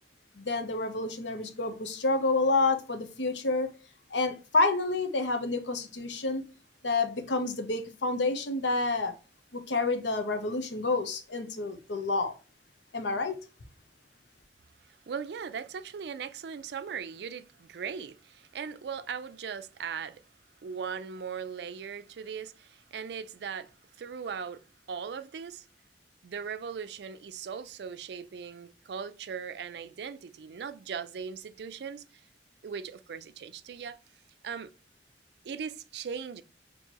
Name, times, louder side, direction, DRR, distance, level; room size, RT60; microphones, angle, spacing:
voice 1, 0.3-3.7 4.1-6.4 6.8-9.1 9.5-12.3 12.9-13.4, left 3 dB, 85° left, 0.8 m, -29 dB
voice 2, 14.9-20.2 20.6-24.6 24.9-25.6 26.2-32.2 32.6-34.0 34.4-34.7 35.4-36.4, right 6 dB, 65° right, 0.4 m, -39 dB
4.5 x 2.8 x 2.9 m
head